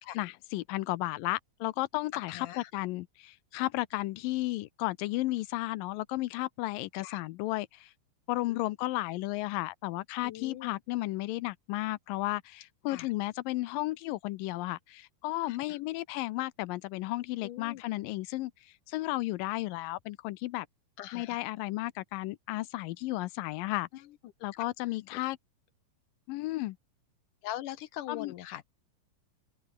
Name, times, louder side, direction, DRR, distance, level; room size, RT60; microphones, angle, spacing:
voice 1, 0.2-2.5 2.7-7.9 8.3-18.5 18.9-20.7 21.1-23.9 24.4-25.4 26.3-26.8 28.1-28.3, left 18 dB, 90° left, 2.4 m, -33 dB
voice 2, 2.1-2.7 6.9-7.2 8.5-8.6 10.2-10.8 12.9-13.1 15.4-15.8 17.4-17.8 21.0-21.4 23.9-25.2 27.4-28.6, left 13 dB, 75° left, 2.4 m, -43 dB
omnidirectional pair, 4.0 m